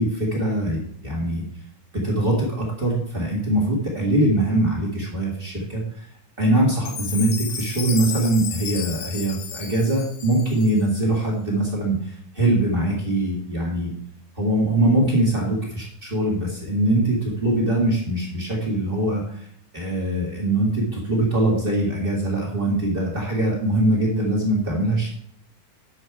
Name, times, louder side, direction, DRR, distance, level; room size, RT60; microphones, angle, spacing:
voice 1, 0.0-1.4 1.9-6.1 6.4-13.9 14.3-19.4 19.7-25.1, right 1 dB, 25° right, -3 dB, 1.2 m, -22 dB
Chime, 6.9-11.1, left 7 dB, 65° left, 1.7 m, -33 dB
9.7 x 6.5 x 4.7 m, 0.64 s
omnidirectional pair, 4.2 m